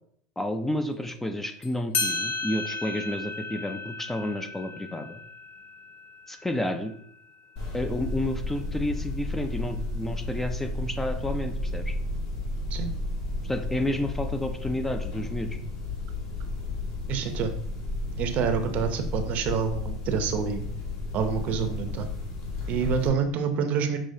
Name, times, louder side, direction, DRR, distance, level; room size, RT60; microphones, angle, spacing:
voice 1, 0.4-5.2 6.3-6.9 7.7-11.9 13.4-15.6, left 1 dB, 10° left, 7 dB, 0.4 m, -30 dB
sound 1, 1.6-1.7 1.9-7.0, left 4 dB, 45° left, 1.3 m, -34 dB
sound 2, 7.6-23.1, left 2 dB, 70° left, 1.6 m, -33 dB
voice 2, 17.1-17.5 18.2-20.6 21.1-22.1 22.7-24.0, right 6 dB, 50° right, 7 dB, 0.7 m, -27 dB
6.4 x 3.0 x 2.7 m, 0.67 s
hypercardioid pair, 95°, 3 cm